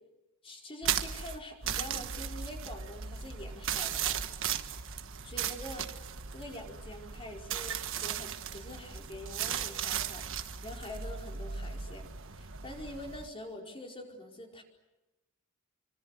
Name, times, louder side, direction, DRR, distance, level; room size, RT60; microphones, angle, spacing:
voice 1, 0.4-4.3 5.2-5.9 6.3-12.1 12.3-14.6, left 1 dB, 25° left, 1 dB, 4.9 m, -45 dB
sound 1, 0.8-13.3, right 8 dB, 60° right, 1.4 m, -37 dB
28.0 x 25.0 x 8.0 m, 1.0 s
head